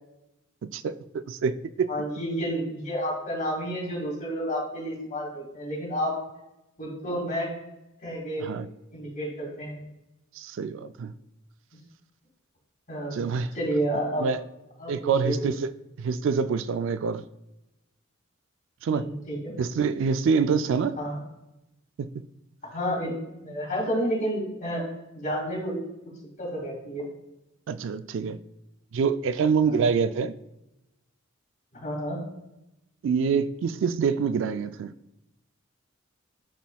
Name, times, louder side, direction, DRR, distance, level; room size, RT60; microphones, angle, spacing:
voice 1, 0.6-1.9 8.4-8.7 10.3-11.1 13.1-13.5 14.2-14.4 14.9-15.7 16.0-17.2 18.8-19.1 19.6-21.0 22.0-22.3 27.7-28.4 28.9-30.4 33.0-34.9, right 5 dB, 65° right, 0.3 m, -26 dB
voice 2, 1.9-6.2 6.8-7.5 8.0-8.5 8.9-9.8 12.9-13.2 13.5-14.3 14.8-15.3 18.9-19.5 21.0-21.2 22.6-24.9 25.1-25.8 26.4-27.1 29.6-29.8 31.7-32.2, equal, 45° left, 2.0 m, -30 dB
11.5 x 4.2 x 2.3 m
head